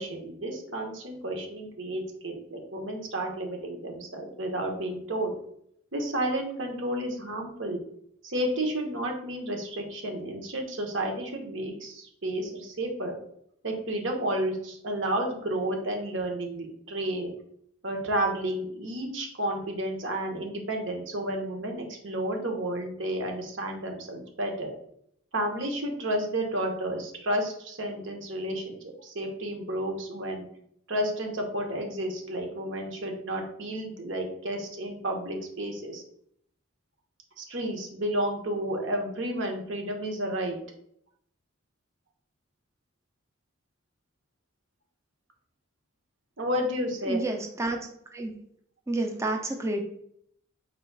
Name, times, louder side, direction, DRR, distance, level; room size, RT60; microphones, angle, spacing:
voice 1, 0.0-5.4 5.9-7.8 8.2-13.2 13.6-17.3 17.8-24.7 25.3-30.4 30.9-36.0 37.4-40.6 46.4-47.3, right 1 dB, 70° right, 2 dB, 1.0 m, -31 dB
voice 2, 47.1-47.8 48.1-48.3 48.9-49.8, right 2 dB, 15° right, 3 dB, 0.5 m, -29 dB
3.9 x 2.8 x 4.6 m, 0.70 s
head